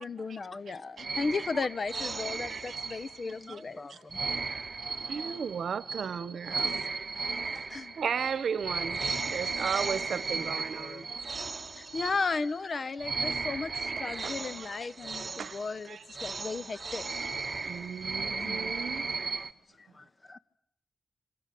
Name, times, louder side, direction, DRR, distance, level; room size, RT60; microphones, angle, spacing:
voice 1, 0.0-3.8 7.7-7.9 11.7-17.0 19.8-19.9, left 4 dB, 60° left, 1.2 m, -35 dB
sound 1, 1.0-3.5 4.1-12.7 13.0-19.5, right 4 dB, 45° right, 1.3 m, -35 dB
voice 2, 3.2-4.2 6.5-6.9 7.5-7.6 10.3-11.1 14.8-14.9 16.7-16.9 18.3-18.7 19.2-20.4, left 3 dB, 40° left, 1.6 m, -49 dB
voice 3, 5.1-6.8 8.0-11.0 14.6-14.7 15.4-15.6 15.9-16.0 17.7-19.1, right 7 dB, 85° right, 1.1 m, -35 dB
28.0 x 27.0 x 7.8 m
cardioid pair, 60°, 0 cm